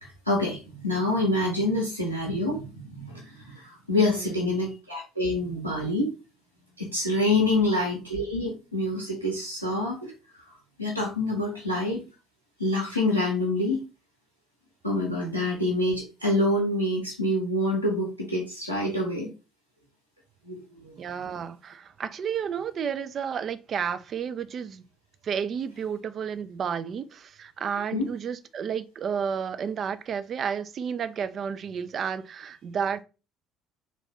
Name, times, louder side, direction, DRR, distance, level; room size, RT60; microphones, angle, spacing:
voice 1, 0.0-6.1 6.8-12.0 12.6-13.8 14.8-19.3 20.4-21.0 27.9-28.1, left 1 dB, 90° left, 0.6 m, -27 dB
voice 2, 4.0-4.6 7.3-7.7 21.0-24.8 25.2-33.0, right 7 dB, 40° right, 0.3 m, -32 dB
3.4 x 2.4 x 3.6 m
figure-of-eight pair, 55°, 0 cm